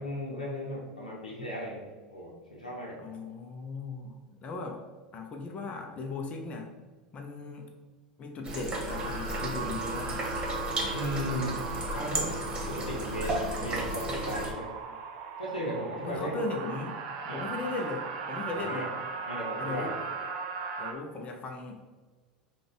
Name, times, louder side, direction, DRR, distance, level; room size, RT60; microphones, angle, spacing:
voice 1, 0.0-1.8 2.1-3.0 10.9-11.6 11.9-14.8 15.4-16.4 17.3-17.4 18.5-18.9 19.3-19.9, equal, 80° left, -3 dB, 0.7 m, -36 dB
voice 2, 3.0-4.9 5.1-6.7 7.1-7.8 8.2-10.3 16.0-17.0 17.2-18.9 19.6-20.0 20.8-21.8, left 3 dB, 30° left, 3 dB, 0.6 m, -37 dB
sound 1, 8.4-14.5, right 1 dB, 20° right, 1.3 m, -34 dB
sound 2, 8.9-20.9, right 5 dB, 55° right, 0.6 m, -38 dB
5.0 x 2.3 x 3.8 m, 1.4 s
figure-of-eight pair, 80°, 4 cm